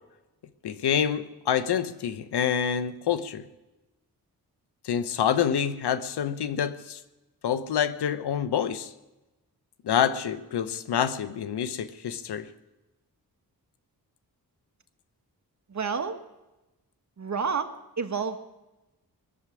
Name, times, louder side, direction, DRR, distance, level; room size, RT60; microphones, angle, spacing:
voice 1, 0.6-3.4 4.8-7.0 7.4-8.9 9.8-12.5, left 8 dB, 85° left, 1.0 m, -27 dB
voice 2, 15.7-16.2 17.2-18.4, right 5 dB, 45° right, 1.6 m, -30 dB
21.0 x 7.3 x 9.0 m
cardioid pair, 70°, 38 cm